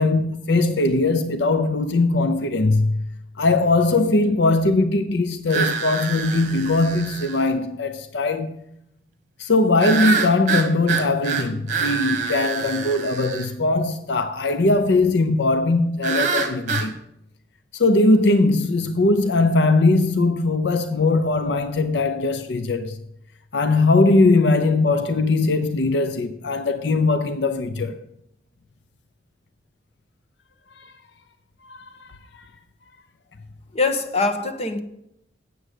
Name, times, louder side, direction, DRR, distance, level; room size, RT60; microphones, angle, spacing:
voice 1, 0.0-3.0 3.4-8.6 9.4-16.9 17.7-23.0 23.5-28.0 30.8-30.9 31.6-32.1, left 2 dB, 70° left, 0.6 m, -20 dB
sound 1, 5.5-7.5 9.8-13.5 16.0-16.9, right 5 dB, 45° right, 1.3 m, -26 dB
voice 2, 33.7-34.8, left 3 dB, 35° left, 1.1 m, -23 dB
7.8 x 7.7 x 8.1 m
head